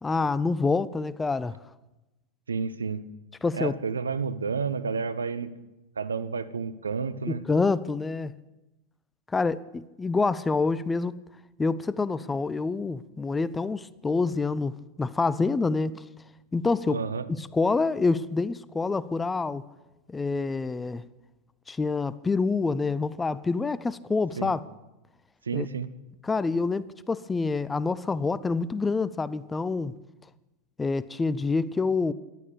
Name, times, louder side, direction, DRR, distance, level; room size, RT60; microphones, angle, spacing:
voice 1, 0.0-1.6 3.4-3.7 7.3-8.3 9.3-11.2 11.6-16.0 16.5-17.0 17.4-19.6 20.1-21.1 21.7-24.6 25.5-25.7 26.2-29.9 30.8-32.1, left 4 dB, 10° left, 0.5 m, -27 dB
voice 2, 2.5-3.0 3.5-5.5 6.0-7.4 16.9-17.3 24.4-24.5 25.5-25.9, right 5 dB, 75° right, 0.7 m, -30 dB
14.0 x 11.0 x 6.9 m
figure-of-eight pair, 90°, 0 cm